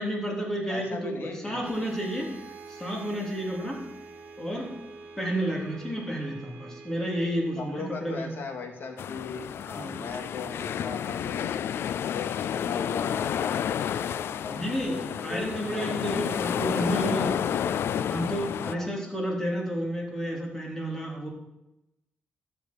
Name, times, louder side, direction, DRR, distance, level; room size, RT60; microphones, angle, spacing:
voice 1, 0.0-2.3 2.7-3.8 4.4-4.7 5.2-8.4 9.8-10.0 14.5-17.3 18.1-21.3, equal, 10° left, -2 dB, 3.7 m, -31 dB
voice 2, 0.7-1.7 7.6-11.5 12.1-15.9 16.8-18.1 18.6-18.9, left 4 dB, 60° left, 3 dB, 2.3 m, -38 dB
sound 1, 1.6-9.4, right 4 dB, 45° right, 2.0 m, -47 dB
sound 2, 9.0-18.7, left 9 dB, 75° left, 0.3 m, -30 dB
13.0 x 7.3 x 6.4 m, 0.89 s
cardioid pair, 110°, 4 cm